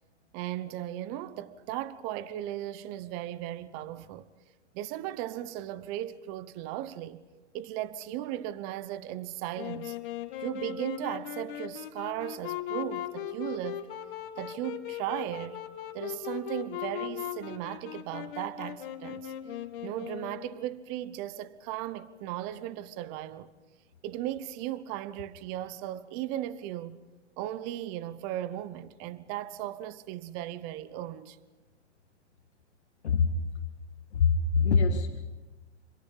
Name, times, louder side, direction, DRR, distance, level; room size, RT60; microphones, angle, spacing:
voice 1, 0.3-4.3 4.7-7.2 7.5-10.0 10.4-13.9 14.4-15.6 15.9-19.3 19.8-23.5 24.0-27.0 27.4-31.4, right 13 dB, 30° right, 0.9 m, -36 dB
Wind instrument woodwind instrument, 9.5-20.7, left 11 dB, 45° left, 2.2 m, -38 dB
voice 2, 34.1-35.2, left 5 dB, 70° left, 1.9 m, -24 dB
28.0 x 26.5 x 5.5 m
hypercardioid pair, 135°, 35 cm